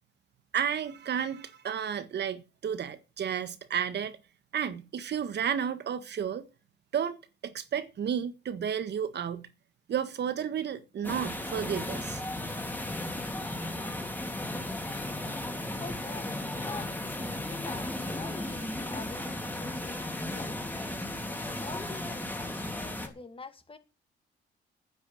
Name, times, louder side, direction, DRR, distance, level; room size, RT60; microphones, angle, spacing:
voice 1, 0.5-4.2 4.5-6.4 6.9-7.2 7.4-9.4 9.9-12.2, right 8 dB, 60° right, 1.5 m, -32 dB
sound 1, 11.0-23.1, left 1 dB, 10° left, 3.4 m, -35 dB
voice 2, 15.8-20.6 21.2-23.8, left 4 dB, 25° left, 2.2 m, -45 dB
9.7 x 8.1 x 9.3 m
cardioid pair, 90°, 20 cm